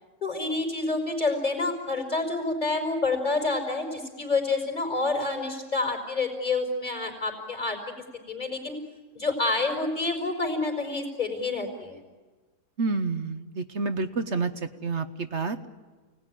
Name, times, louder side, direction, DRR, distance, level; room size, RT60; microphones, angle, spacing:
voice 1, 0.2-7.8 8.3-8.8 9.1-12.0, left 3 dB, 25° left, -1 dB, 4.9 m, -28 dB
voice 2, 12.8-15.7, right 4 dB, 50° right, 9 dB, 1.2 m, -29 dB
29.5 x 19.5 x 10.0 m, 1.3 s
omnidirectional pair, 1.7 m